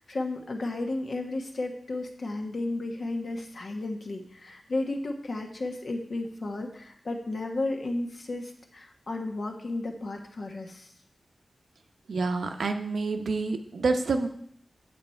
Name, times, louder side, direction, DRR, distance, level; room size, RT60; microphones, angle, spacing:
voice 1, 0.0-10.9, left 2 dB, 55° left, 3 dB, 1.3 m, -33 dB
voice 2, 12.1-14.3, right 3 dB, 85° right, 6 dB, 0.8 m, -28 dB
8.0 x 7.9 x 4.4 m, 0.66 s
wide cardioid pair, 135°, 0 cm